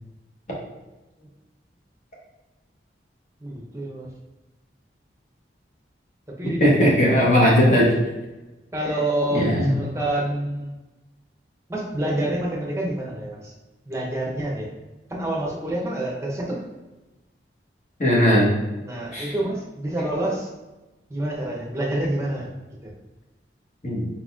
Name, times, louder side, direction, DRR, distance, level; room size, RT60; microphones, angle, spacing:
voice 1, 3.4-4.1 6.4-6.7 7.1-7.3 8.7-10.8 11.7-13.5 13.9-14.7 15.1-16.6 18.8-20.5 21.1-22.9, right 1 dB, 15° right, -3 dB, 0.7 m, -27 dB
voice 2, 6.6-7.9 9.3-9.8 18.0-18.5 19.1-19.3 23.8-24.1, equal, 40° left, -5 dB, 1.2 m, -18 dB
4.3 x 3.9 x 2.4 m, 1.1 s
head